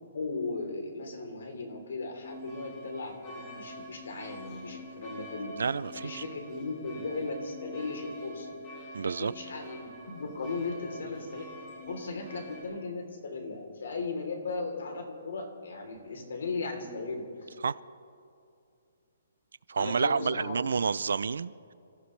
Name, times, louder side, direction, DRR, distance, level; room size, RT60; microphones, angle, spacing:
voice 1, 0.1-5.6 5.9-8.5 9.0-11.5 11.9-17.5 19.7-20.8, left 3 dB, 65° left, 3.4 m, -37 dB
sound 1, 2.2-12.6, right 1 dB, 20° left, 3.8 m, -46 dB
voice 2, 5.6-6.2 8.9-9.3 17.6-17.8 19.7-21.7, right 5 dB, 80° right, 0.4 m, -29 dB
28.0 x 15.0 x 3.3 m
hypercardioid pair, 175°, 0 cm